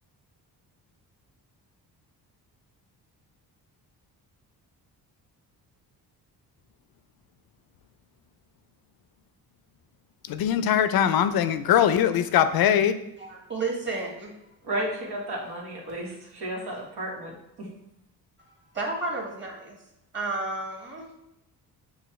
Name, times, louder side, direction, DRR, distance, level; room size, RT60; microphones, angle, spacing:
voice 1, 10.3-13.0, left 9 dB, 65° left, 11 dB, 0.5 m, -21 dB
voice 2, 13.2-14.3 18.7-19.8 20.1-21.0, right 3 dB, 30° right, -2 dB, 1.6 m, -31 dB
voice 3, 14.6-17.7, right 1 dB, 80° right, -2 dB, 1.5 m, -33 dB
6.8 x 2.4 x 3.1 m, 0.86 s
cardioid pair, 95°, 39 cm